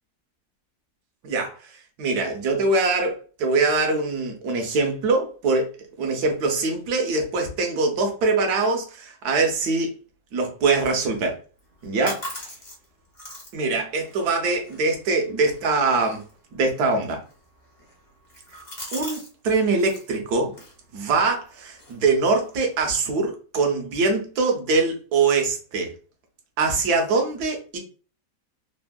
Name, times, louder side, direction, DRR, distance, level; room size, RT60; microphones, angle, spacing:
voice 1, 1.2-1.5 2.0-5.7 6.0-9.9 10.3-11.4 11.8-12.2 13.5-16.2 16.5-17.2 18.9-20.5 20.9-25.9 26.6-27.8, right 3 dB, 70° right, 1.2 m, -23 dB
sound 1, 11.6-19.3 19.6-20.1 20.5-22.8, left 1 dB, 30° left, 0.6 m, -42 dB
3.4 x 2.0 x 2.2 m
omnidirectional pair, 1.9 m